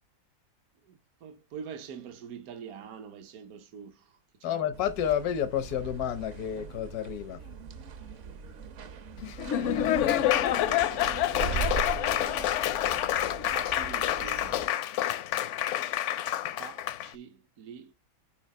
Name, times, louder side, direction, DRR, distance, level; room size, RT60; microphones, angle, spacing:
voice 1, 0.9-4.6 9.4-12.6 13.5-14.6 16.6-17.9, right 7 dB, 75° right, 1.3 m, -45 dB
voice 2, 4.4-7.4, left 10 dB, 85° left, 1.3 m, -30 dB
sound 1, 4.7-14.7, right 5 dB, 60° right, 1.0 m, -40 dB
Laughter / Applause, 9.2-17.1, left 12 dB, 65° left, 0.8 m, -28 dB
5.8 x 4.7 x 5.2 m
omnidirectional pair, 1.6 m